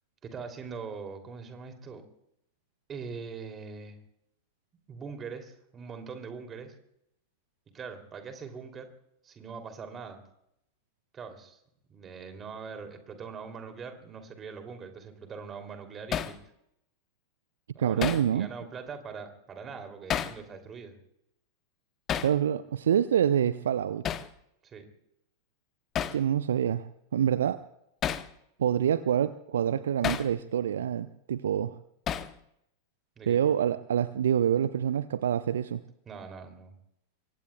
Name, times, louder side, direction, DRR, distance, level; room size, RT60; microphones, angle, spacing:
voice 1, 0.2-2.0 2.9-4.0 4.9-6.7 7.7-8.9 9.2-10.2 11.1-11.6 11.9-16.4 17.7-21.0 24.6-24.9 33.2-33.4 36.0-36.7, right 5 dB, 25° right, 6 dB, 2.9 m, -42 dB
Hammer, 16.1-16.4 18.0-18.3 20.1-20.4 22.1-22.4 24.0-24.3 26.0-26.2 28.0-28.3 30.0-30.3 32.1-32.4, left 9 dB, 30° left, 0.9 m, -30 dB
voice 2, 17.8-18.5 22.2-24.0 26.1-27.6 28.6-31.8 33.3-35.8, right 9 dB, 65° right, 15 dB, 0.6 m, -26 dB
26.5 x 23.5 x 2.3 m, 0.77 s
figure-of-eight pair, 90°, 0 cm